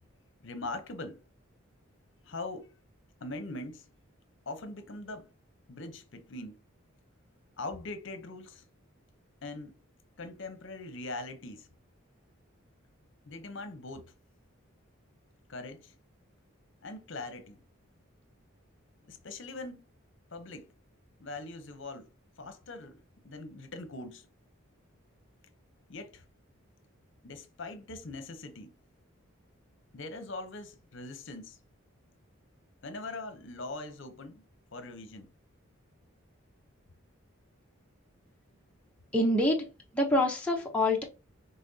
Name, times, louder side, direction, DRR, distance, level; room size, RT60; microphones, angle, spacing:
voice 1, 0.4-1.2 2.2-2.7 3.2-3.9 4.5-5.3 5.7-6.6 7.6-8.6 9.4-9.7 10.2-11.7 13.3-14.1 15.5-15.9 16.8-17.6 19.1-19.8 20.3-20.7 21.2-22.1 22.4-24.3 25.9-26.2 27.2-28.7 29.9-31.6 32.8-34.4 34.7-35.3, left 2 dB, 60° left, 0.7 m, -41 dB
voice 2, 39.1-39.7 39.9-41.0, left 1 dB, 5° left, 0.7 m, -26 dB
5.7 x 3.4 x 2.7 m
head